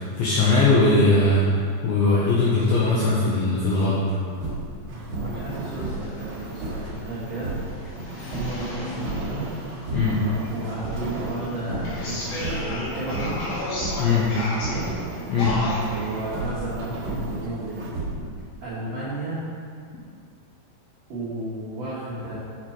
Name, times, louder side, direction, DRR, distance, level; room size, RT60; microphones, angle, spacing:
voice 1, 0.0-1.5 1.8-4.2 9.9-10.2 14.0-14.3 15.3-15.6, left 3 dB, 75° left, -7 dB, 2.2 m, -20 dB
sound 1, 4.3-4.8 5.1-5.5 5.8-6.9 7.3-7.7 8.3-9.4 9.7-10.2 10.6-11.4 11.7-12.0 12.3-12.8 13.1-13.5 13.8-14.1 14.6-15.0 15.3-15.7 16.3-17.4 17.9-18.4, right 2 dB, 50° right, 2.1 m, -32 dB
voice 2, 4.8-7.5 7.8-9.5 10.5-13.5 14.3-14.9 15.8-17.9 18.6-19.5 21.1-22.4, right 2 dB, 90° right, -10 dB, 1.4 m, -33 dB
sound 2, 4.9-17.9, right 2 dB, 70° right, 1.7 m, -38 dB
sound 3, 5.5-16.2, left 1 dB, 60° left, 3.5 m, -35 dB
6.6 x 5.8 x 4.8 m, 2.2 s
omnidirectional pair, 5.2 m